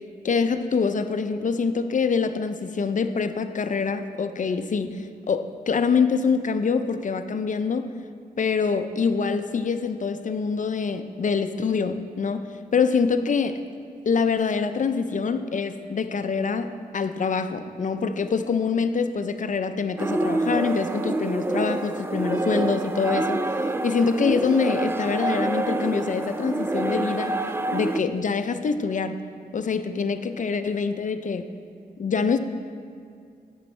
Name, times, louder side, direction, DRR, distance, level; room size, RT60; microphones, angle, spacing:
voice 1, 0.2-7.9 8.4-13.6 14.1-23.5 23.8-27.3 27.7-29.2 29.5-31.5 32.0-32.4, left 5 dB, 50° left, 10 dB, 0.5 m, -25 dB
sound 1, 20.0-28.0, right 2 dB, 15° right, 0.4 m, -27 dB
10.5 x 7.4 x 3.3 m, 2.3 s
cardioid pair, 50°, 17 cm